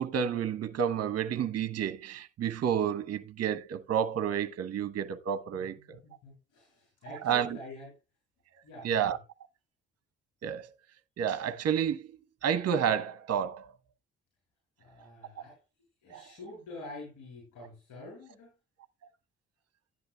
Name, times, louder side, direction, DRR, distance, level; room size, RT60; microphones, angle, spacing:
voice 1, 0.0-6.0 7.2-7.6 8.8-9.2 10.4-10.7 11.2-13.7 16.1-16.3, right 8 dB, 50° right, 0.9 m, -30 dB
voice 2, 5.5-7.9 8.6-9.0 14.8-15.6 16.0-18.5, left 2 dB, 70° left, 7.8 m, -47 dB
13.5 x 10.5 x 2.3 m
hypercardioid pair, 40°, 32 cm